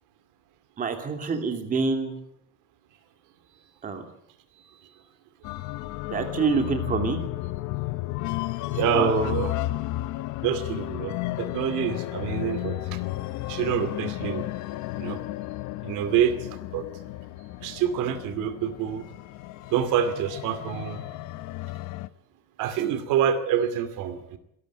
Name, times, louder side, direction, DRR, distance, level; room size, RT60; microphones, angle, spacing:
voice 1, 0.8-2.1 3.8-4.0 6.1-7.2 8.9-9.3, right 4 dB, 25° right, 6 dB, 2.6 m, -26 dB
voice 2, 4.6-4.9 8.7-9.5 10.4-13.0 13.5-14.5 15.0-15.2 15.8-16.8 17.6-19.0 19.7-21.1 22.6-24.4, right 9 dB, 75° right, 11 dB, 2.5 m, -27 dB
sound 1, 5.4-22.1, left 17 dB, 70° left, 0.8 m, -33 dB
26.0 x 12.5 x 9.4 m, 0.76 s
cardioid pair, 175°, 31 cm